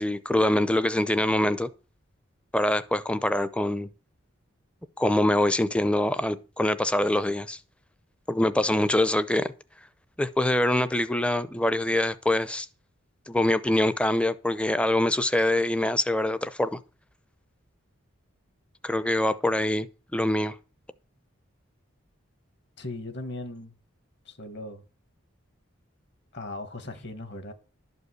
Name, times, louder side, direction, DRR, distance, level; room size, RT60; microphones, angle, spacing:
voice 1, 0.0-1.7 2.5-3.9 5.0-7.6 8.3-9.5 10.2-12.7 13.3-16.8 18.8-19.9 20.1-20.6, left 1 dB, 5° left, 0.5 m, -24 dB
voice 2, 22.8-23.7 24.3-24.8 26.3-27.5, left 2 dB, 55° left, 1.8 m, -38 dB
12.0 x 5.4 x 8.1 m
head